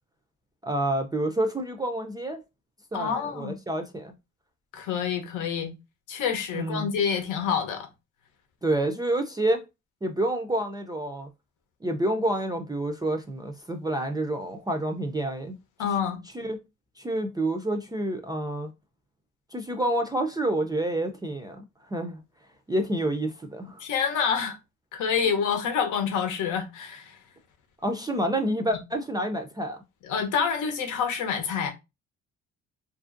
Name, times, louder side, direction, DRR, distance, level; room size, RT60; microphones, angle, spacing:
voice 1, 0.6-2.4 2.9-4.1 6.5-6.9 8.6-9.6 10.0-11.3 11.8-15.6 16.3-16.6 17.0-18.7 19.5-22.2 22.7-23.8 27.8-29.8, right 1 dB, 15° right, 0.4 m, -28 dB
voice 2, 2.9-3.6 4.7-5.7 6.1-7.9 15.8-16.2 23.8-24.6 24.9-27.2 30.0-31.7, left 7 dB, 85° left, 0.8 m, -27 dB
2.8 x 2.5 x 2.5 m
cardioid pair, 90°, 30 cm